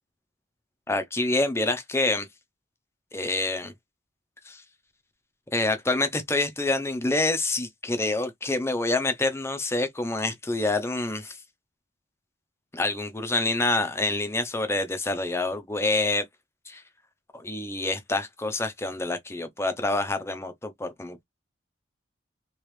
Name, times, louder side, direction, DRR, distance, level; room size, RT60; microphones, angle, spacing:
voice 1, 0.9-2.3 3.1-3.7 4.4-4.6 5.5-11.4 12.7-16.2 16.7-16.8 17.3-21.2, left 2 dB, 15° left, 0.6 m, -27 dB
3.2 x 3.1 x 3.1 m
head